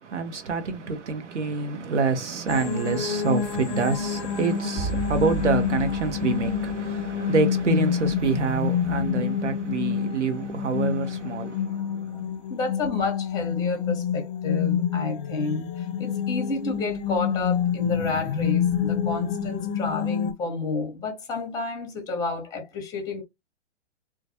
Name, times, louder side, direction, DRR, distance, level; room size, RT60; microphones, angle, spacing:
voice 1, 0.0-12.3, right 5 dB, 85° right, 0.8 m, -27 dB
sound 1, 2.5-20.3, left 8 dB, 50° left, 0.4 m, -27 dB
sound 2, 4.8-7.6, right 4 dB, 45° right, 0.9 m, -34 dB
voice 2, 12.5-23.2, left 3 dB, 10° left, 0.6 m, -30 dB
2.2 x 2.0 x 2.7 m
hypercardioid pair, 125°, 35 cm